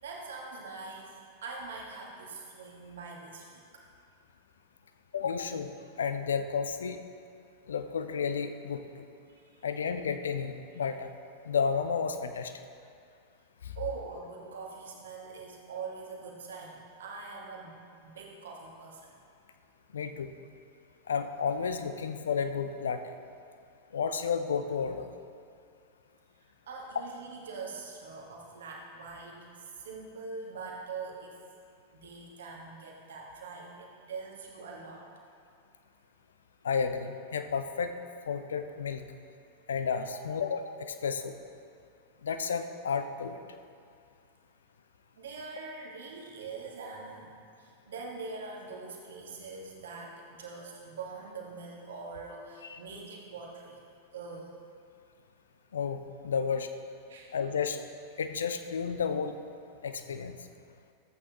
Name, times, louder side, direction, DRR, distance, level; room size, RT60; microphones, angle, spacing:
voice 1, 0.0-1.1 1.4-3.6 9.3-9.7 13.7-19.1 26.7-31.4 31.9-35.0 45.2-53.8 54.1-54.5 57.1-57.3, right 4 dB, 60° right, -1 dB, 1.6 m, -43 dB
voice 2, 5.1-7.0 7.7-8.8 9.6-11.1 11.4-12.5 13.6-13.7 19.9-20.3 21.1-23.1 23.9-25.1 36.6-37.9 38.3-39.0 39.7-41.4 42.2-43.4 52.6-52.8 55.7-56.0 56.2-56.7 57.3-57.8 58.2-59.3 59.8-60.4, left 6 dB, 65° left, 8 dB, 0.5 m, -32 dB
14.0 x 8.4 x 2.9 m, 2.3 s
figure-of-eight pair, 90°, 0 cm